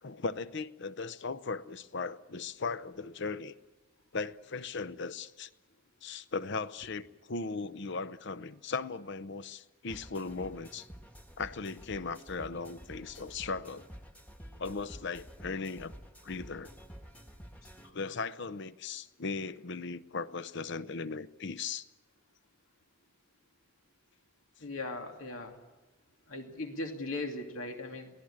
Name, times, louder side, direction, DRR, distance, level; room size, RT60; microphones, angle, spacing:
voice 1, 0.0-3.5 4.1-5.5 6.0-10.9 11.4-13.9 14.6-15.9 16.2-16.7 17.9-21.9, left 4 dB, 60° left, 0.7 m, -38 dB
sound 1, 9.9-17.9, equal, 5° left, 1.4 m, -50 dB
voice 2, 24.6-25.6 26.3-28.1, left 2 dB, 90° left, 2.6 m, -38 dB
23.5 x 18.0 x 8.7 m
head